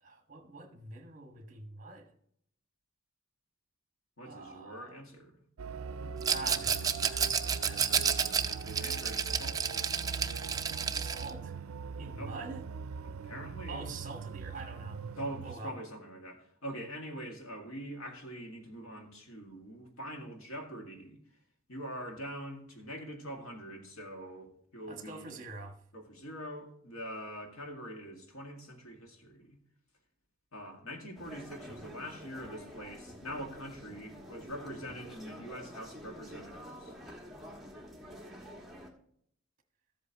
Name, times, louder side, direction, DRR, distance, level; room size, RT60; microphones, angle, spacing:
voice 1, 0.0-2.1 4.2-5.0 6.3-8.5 10.9-11.5 12.0-12.6 13.7-15.0 15.4-15.7 24.9-25.8, right 3 dB, 35° right, 1.3 m, -45 dB
voice 2, 4.2-5.4 8.5-9.9 12.1-12.4 13.0-13.9 15.2-21.2 21.7-25.4 25.9-29.6 30.5-36.9, equal, 85° left, 2.0 m, -44 dB
sound 1, 5.6-15.6, right 5 dB, 90° right, 0.4 m, -41 dB
Rattle, 6.2-11.3, right 7 dB, 15° right, 0.3 m, -31 dB
sound 2, 31.1-38.9, equal, ahead, 1.2 m, -48 dB
13.5 x 8.0 x 2.9 m
head